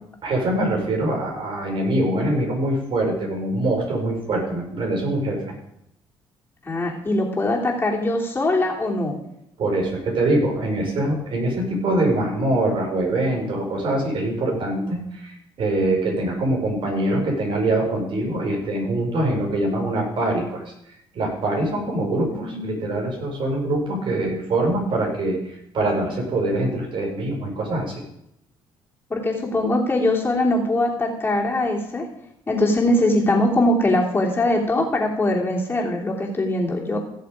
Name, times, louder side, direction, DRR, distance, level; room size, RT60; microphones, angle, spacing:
voice 1, 0.2-5.4 9.6-20.7 21.1-27.9, right 1 dB, 55° right, 1 dB, 4.8 m, -24 dB
voice 2, 6.6-9.2 22.3-22.8 29.1-32.1 32.5-37.0, left 1 dB, 20° left, -1 dB, 3.2 m, -22 dB
16.0 x 7.0 x 5.0 m, 0.77 s
cardioid pair, 100°, 10 cm